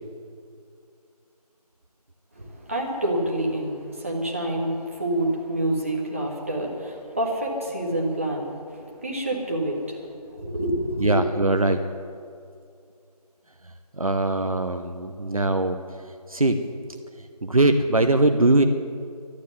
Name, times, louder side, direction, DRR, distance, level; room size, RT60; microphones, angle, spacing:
voice 1, 2.3-11.2, right 1 dB, 20° right, -2 dB, 1.5 m, -28 dB
voice 2, 11.0-11.8 14.0-15.8 16.3-16.6 17.4-18.6, right 2 dB, 60° right, 6 dB, 0.9 m, -21 dB
12.0 x 11.0 x 9.5 m, 2.4 s
figure-of-eight pair, 170°, 20 cm